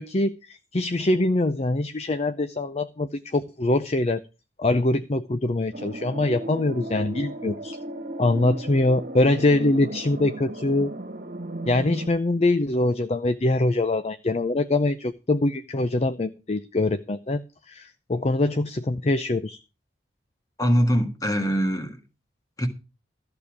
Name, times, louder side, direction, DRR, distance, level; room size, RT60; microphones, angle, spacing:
voice 1, 0.0-4.2 4.6-7.8 8.2-10.9 11.7-19.6, left 2 dB, 35° left, 0.5 m, -23 dB
sound 1, 5.7-12.1, right 1 dB, 50° right, 1.8 m, -35 dB
voice 2, 20.6-22.0 22.6-22.7, equal, 20° left, 1.7 m, -22 dB
13.5 x 6.9 x 6.0 m
head